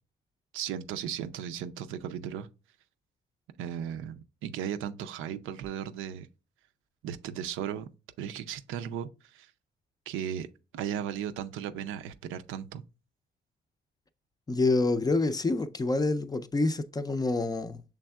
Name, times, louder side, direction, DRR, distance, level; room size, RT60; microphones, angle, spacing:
voice 1, 0.5-2.5 3.6-6.3 7.0-7.9 8.2-9.5 10.1-10.5 10.7-12.8, right 9 dB, 90° right, 0.5 m, -36 dB
voice 2, 14.5-17.8, left 3 dB, 20° left, 0.4 m, -27 dB
6.3 x 3.4 x 2.3 m
cardioid pair, 90°, 20 cm